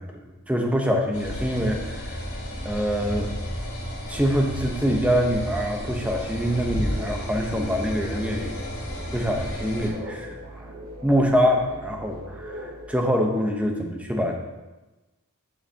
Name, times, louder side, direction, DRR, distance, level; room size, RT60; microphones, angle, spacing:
voice 1, 0.0-2.2 2.6-3.3 4.1-8.5 9.1-10.7 11.0-14.4, equal, 5° right, 1 dB, 0.9 m, -25 dB
sound 1, 1.1-9.9, equal, 65° left, 2.0 m, -33 dB
sound 2, 6.0-13.1, equal, 70° right, 1.0 m, -41 dB
11.0 x 5.8 x 2.9 m, 1.1 s
head